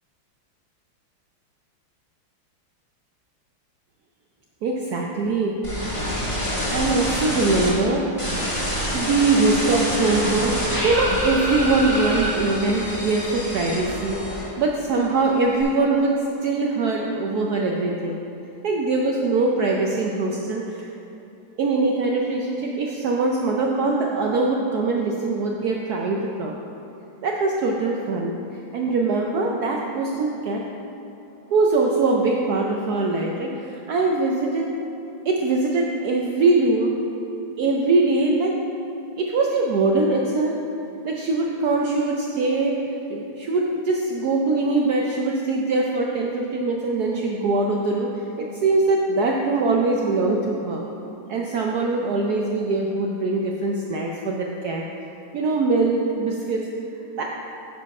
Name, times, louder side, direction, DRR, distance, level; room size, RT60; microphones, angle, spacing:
voice 1, 4.6-5.5 6.7-8.1 8.9-16.1 16.4-18.2 18.6-20.9 21.6-26.6 27.2-28.3 28.7-30.6 31.5-34.7 35.2-36.9 37.6-38.6 39.2-40.6 41.0-42.8 43.1-50.8 51.3-54.8 55.3-56.7 57.2-57.3, right 3 dB, 85° right, 0 dB, 0.8 m, -22 dB
sound 1, 5.6-7.7 8.2-14.7 15.0-15.6, equal, 15° left, 1.6 m, -26 dB
9.9 x 4.7 x 5.3 m, 2.9 s
omnidirectional pair, 2.4 m